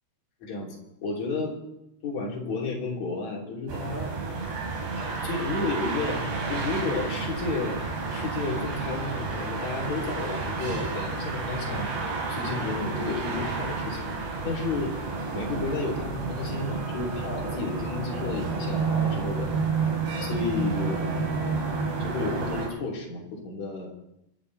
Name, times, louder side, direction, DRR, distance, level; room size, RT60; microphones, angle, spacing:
voice 1, 0.4-0.8 1.0-1.6 2.0-4.2 4.9-6.2 6.5-7.8 8.1-11.9 12.3-14.1 14.4-15.0 15.3-19.5 20.2-21.1 22.0-23.9, left 3 dB, 40° left, -3 dB, 4.1 m, -32 dB
sound 1, 3.7-22.7, right 4 dB, 60° right, 5.2 m, -30 dB
27.5 x 12.5 x 4.2 m, 0.83 s
omnidirectional pair, 5.5 m